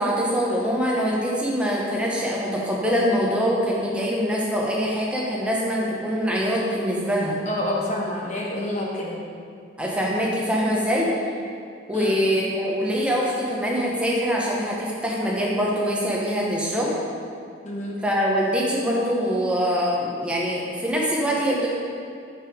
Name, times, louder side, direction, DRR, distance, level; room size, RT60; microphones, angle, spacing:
voice 1, 0.0-7.4 9.8-11.1 11.9-17.0 18.0-21.7, equal, 5° right, -4 dB, 0.9 m, -24 dB
voice 2, 7.5-9.2 11.9-12.3 17.6-18.0, left 1 dB, 35° left, -3 dB, 1.0 m, -28 dB
5.4 x 5.2 x 4.9 m, 2.3 s
head